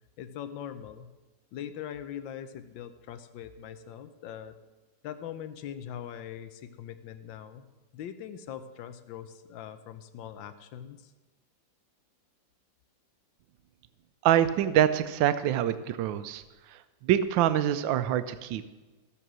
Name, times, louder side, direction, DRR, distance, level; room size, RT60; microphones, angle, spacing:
voice 1, 0.2-1.1 1.5-4.6 5.0-7.6 7.9-11.1, left 9 dB, 85° left, 11 dB, 1.5 m, -41 dB
voice 2, 14.2-16.4 16.7-18.6, right 11 dB, 85° right, 12 dB, 1.4 m, -25 dB
15.0 x 7.1 x 6.1 m, 1.2 s
omnidirectional pair, 2.0 m